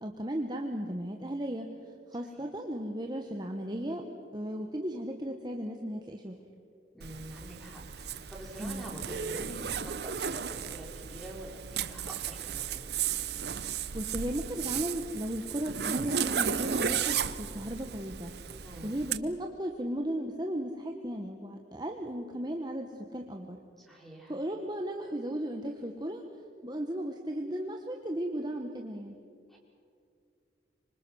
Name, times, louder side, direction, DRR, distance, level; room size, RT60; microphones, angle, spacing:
voice 1, 0.0-1.7 2.1-4.0 4.3-6.3 8.6-8.9 13.9-18.3 18.8-23.6 24.3-26.2 26.6-29.2, right 1 dB, 25° right, 3 dB, 1.2 m, -35 dB
voice 2, 6.9-12.8 18.6-18.9 23.8-24.3 29.5-29.6, right 1 dB, ahead, -2 dB, 5.2 m, -46 dB
Zipper (clothing), 7.0-19.2, right 7 dB, 60° right, 0.8 m, -34 dB
26.0 x 25.0 x 6.3 m, 2.4 s
head